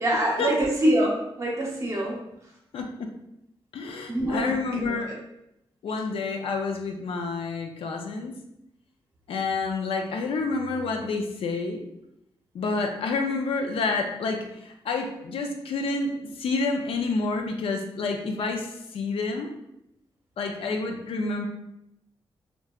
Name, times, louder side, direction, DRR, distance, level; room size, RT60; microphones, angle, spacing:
voice 1, 0.0-2.2 4.1-4.5 4.8-5.2, right 1 dB, 30° right, -3 dB, 0.8 m, -25 dB
voice 2, 2.7-3.1 3.7-5.2 5.8-8.4 9.3-11.8 12.5-19.5 20.4-21.5, left 3 dB, 80° left, 3 dB, 0.4 m, -29 dB
2.8 x 2.2 x 2.3 m, 0.82 s
cardioid pair, 90°, 9 cm